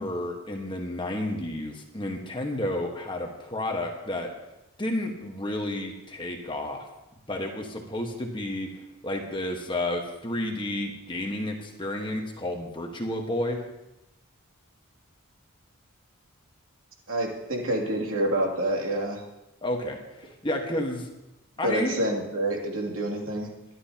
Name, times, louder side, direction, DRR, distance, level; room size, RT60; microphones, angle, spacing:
voice 1, 0.0-4.3 4.8-6.9 7.3-8.7 9.0-13.6 19.6-21.1 21.6-22.0, left 1 dB, 20° left, 2 dB, 1.4 m, -31 dB
voice 2, 17.1-19.2 21.6-23.5, right 1 dB, 75° right, 0 dB, 2.7 m, -27 dB
22.0 x 11.5 x 2.9 m, 0.96 s
head